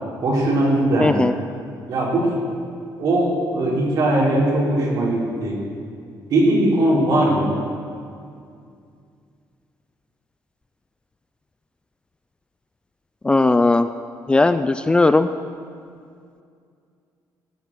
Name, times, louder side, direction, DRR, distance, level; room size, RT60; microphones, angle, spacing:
voice 1, 0.2-1.3 1.9-2.4 3.0-5.6 6.3-7.5, right 1 dB, 60° right, -4 dB, 4.0 m, -19 dB
voice 2, 1.0-1.3 13.2-13.9 14.3-15.3, left 2 dB, 15° left, 11 dB, 0.3 m, -17 dB
17.5 x 7.3 x 7.4 m, 2.3 s
cardioid pair, 140°, 7 cm